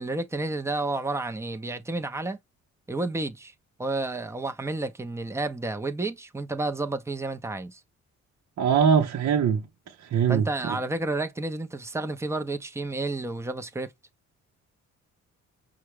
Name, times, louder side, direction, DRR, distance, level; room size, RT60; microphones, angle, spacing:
voice 1, 0.0-2.4 2.9-3.5 3.8-7.8 10.3-13.9, right 2 dB, 10° right, 0.8 m, -31 dB
voice 2, 8.6-9.6 10.1-10.7, right 7 dB, 60° right, 0.9 m, -22 dB
5.5 x 2.4 x 3.2 m
cardioid pair, 90°, 30 cm